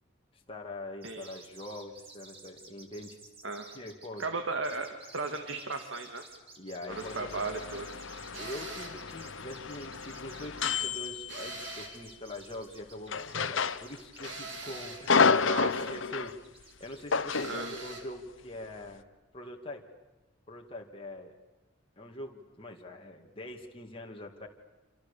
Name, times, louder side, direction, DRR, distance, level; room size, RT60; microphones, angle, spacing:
voice 1, 0.5-3.2 3.7-4.2 6.6-7.3 8.3-15.3 15.8-16.3 16.8-19.0 19.3-19.8 20.5-21.4 22.0-24.5, left 1 dB, 30° left, 1 dB, 2.4 m, -43 dB
sound 1, 1.0-17.5, right 3 dB, 30° right, 3.8 m, -53 dB
voice 2, 4.2-6.2 7.1-7.9 15.5-16.0 17.4-17.8, right 3 dB, 90° right, 6 dB, 2.0 m, -35 dB
sound 2, 6.9-11.9 13.1-14.4 14.7-16.4 17.1-17.6, left 5 dB, 80° left, 1.0 m, -30 dB
sound 3, 8.3-9.0 11.3-12.1 14.2-15.1 17.3-18.1, right 3 dB, 70° right, 4.0 m, -43 dB
27.5 x 27.5 x 7.0 m, 1.1 s
head